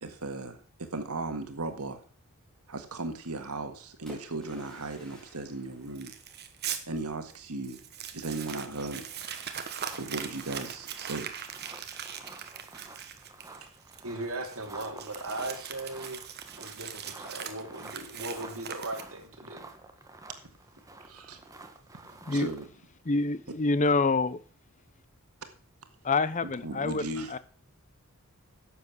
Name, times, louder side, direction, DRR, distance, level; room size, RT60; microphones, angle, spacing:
voice 1, 0.0-2.0 2.7-6.1 6.9-7.8 8.1-9.0 10.0-11.3 21.0-21.4 22.1-22.7 26.6-27.3, right 2 dB, 85° right, 1.8 m, -36 dB
Splash splatter, 4.1-6.7 8.5-10.4, left 2 dB, 5° left, 3.7 m, -53 dB
Crumpling crinkling, 6.0-6.8 7.3-7.4 7.6-19.3, right 8 dB, 50° right, 1.3 m, -41 dB
sound 1, 9.3-22.7, right 2 dB, 15° right, 1.2 m, -50 dB
voice 2, 14.0-16.3 16.6-19.6, right 2 dB, 65° right, 2.9 m, -38 dB
voice 3, 23.0-24.4 26.0-27.1 27.3-27.4, left 3 dB, 35° left, 0.7 m, -26 dB
11.0 x 7.5 x 6.1 m
head